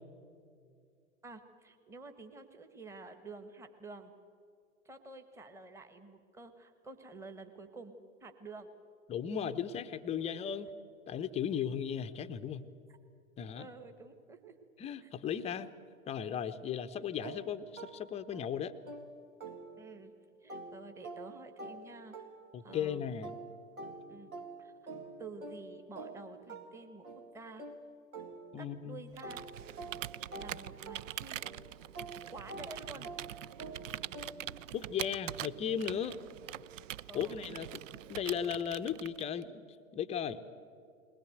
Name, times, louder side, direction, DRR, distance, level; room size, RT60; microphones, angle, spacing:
voice 1, 1.2-4.1 4.8-8.7 10.5-10.6 12.9-13.0 13.6-14.5 15.0-15.1 17.2-17.3 19.8-20.1 20.4-22.2 22.6-23.2 24.1-24.3 24.6-27.1 27.3-27.7 28.6-29.5 30.3-31.4 32.3-33.1 37.1-37.4, right 3 dB, 5° right, 7 dB, 1.2 m, -50 dB
voice 2, 9.1-10.7 11.1-12.6 13.4-13.7 14.8-15.7 16.1-18.7 22.5-23.4 28.5-29.0 34.7-36.2 37.1-37.7 38.1-39.6 39.9-40.4, left 8 dB, 15° left, 11 dB, 0.7 m, -36 dB
sound 1, 17.2-20.1 20.5-28.8 29.2-34.7, right 2 dB, 90° right, 2.1 m, -48 dB
Computer keyboard, 29.1-39.4, right 13 dB, 65° right, 0.5 m, -44 dB
21.0 x 19.5 x 7.9 m, 2.4 s
figure-of-eight pair, 105°, 41 cm